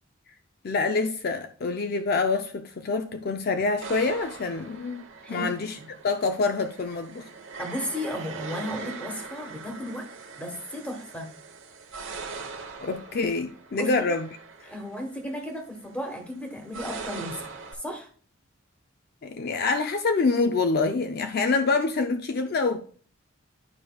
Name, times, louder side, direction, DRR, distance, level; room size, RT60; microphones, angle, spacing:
voice 1, 0.6-5.0 5.3-5.8 6.0-7.3 12.8-14.3 19.2-22.8, left 3 dB, 50° left, 0.5 m, -26 dB
sound 1, 3.8-17.7, right 4 dB, 80° right, 1.0 m, -42 dB
voice 2, 7.6-10.0 10.3-11.3 13.7-14.0 14.7-17.4 17.7-18.1, left 1 dB, 5° left, 1.3 m, -34 dB
10.5 x 5.0 x 2.3 m
head